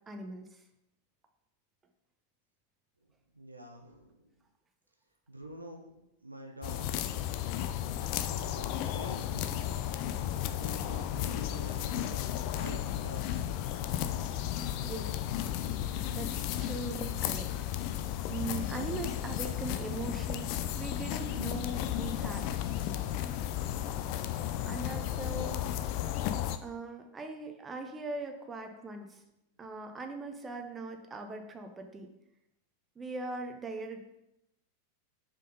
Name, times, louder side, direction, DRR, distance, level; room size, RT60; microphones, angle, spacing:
voice 1, 0.1-0.6 14.8-15.2 16.1-17.5 18.3-22.5 24.6-25.7 26.6-29.2 29.6-32.1 33.0-34.2, right 3 dB, 15° right, 5 dB, 0.7 m, -40 dB
voice 2, 3.3-4.3 5.3-5.9 6.2-7.4 8.2-9.6 10.5-12.2 12.5-13.8 25.3-26.1, right 2 dB, 85° right, 3 dB, 0.8 m, -47 dB
sound 1, 6.6-26.6, left 11 dB, 45° left, 0.4 m, -34 dB
5.2 x 3.8 x 5.4 m, 0.87 s
figure-of-eight pair, 90°, 0 cm